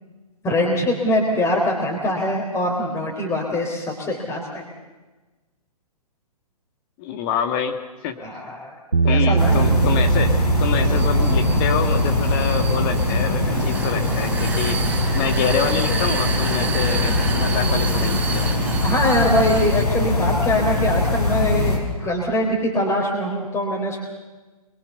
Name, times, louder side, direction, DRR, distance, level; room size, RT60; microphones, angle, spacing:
voice 1, 0.4-4.6 8.2-8.7 9.1-9.6 18.8-24.0, left 1 dB, 15° left, -2 dB, 3.9 m, -23 dB
voice 2, 7.0-8.2 9.0-18.5, left 8 dB, 35° left, 7 dB, 2.5 m, -26 dB
Bass guitar, 8.9-15.2, right 5 dB, 85° right, 0.7 m, -23 dB
sound 1, 9.4-21.8, left 2 dB, 80° left, 6.7 m, -22 dB
Vehicle, 10.5-19.8, right 4 dB, 10° right, 3.5 m, -30 dB
27.0 x 23.5 x 7.1 m, 1.2 s
figure-of-eight pair, 120°, 20 cm